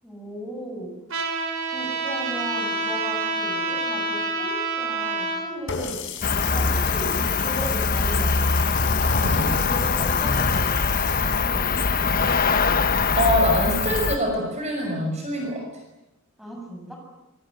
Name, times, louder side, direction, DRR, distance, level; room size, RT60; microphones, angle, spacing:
voice 1, 0.0-0.9 1.7-6.0 6.5-8.6 9.1-11.7 16.4-17.0, right 1 dB, ahead, 0 dB, 7.9 m, -36 dB
Trumpet, 1.1-5.4, right 2 dB, 60° right, 5.7 m, -27 dB
Water tap faucet, 5.7-11.5, left 7 dB, 55° left, 4.7 m, -36 dB
Cricket, 6.2-14.2, left 4 dB, 40° left, 1.1 m, -22 dB
voice 2, 9.2-9.5 13.2-15.6, equal, 30° right, 1 dB, 5.7 m, -24 dB
25.5 x 24.5 x 8.9 m, 0.92 s
head